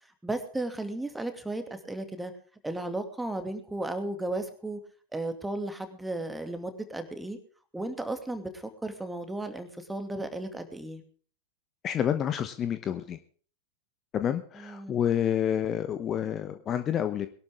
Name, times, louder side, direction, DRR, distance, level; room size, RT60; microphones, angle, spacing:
voice 1, 0.2-2.3 2.6-4.8 5.1-7.4 7.7-11.0 14.6-15.0, right 2 dB, 5° right, 8 dB, 2.4 m, -34 dB
voice 2, 11.8-13.2 14.1-17.3, left 9 dB, 30° left, 10 dB, 1.1 m, -28 dB
21.5 x 12.0 x 3.7 m, 0.43 s
figure-of-eight pair, 90°, 0 cm